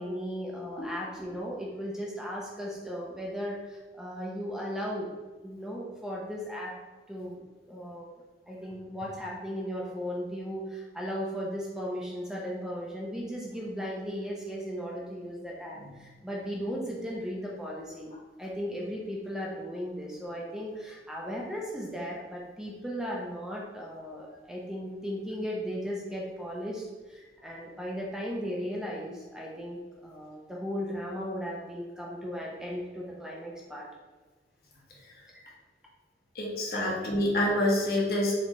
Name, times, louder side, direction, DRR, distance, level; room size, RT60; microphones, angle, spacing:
voice 1, 0.0-5.2 5.4-6.8 7.1-18.1 18.4-33.9, equal, 5° right, -3 dB, 0.5 m, -36 dB
voice 2, 36.3-38.4, left 1 dB, 60° left, -3 dB, 1.3 m, -27 dB
4.3 x 3.8 x 3.0 m, 1.3 s
head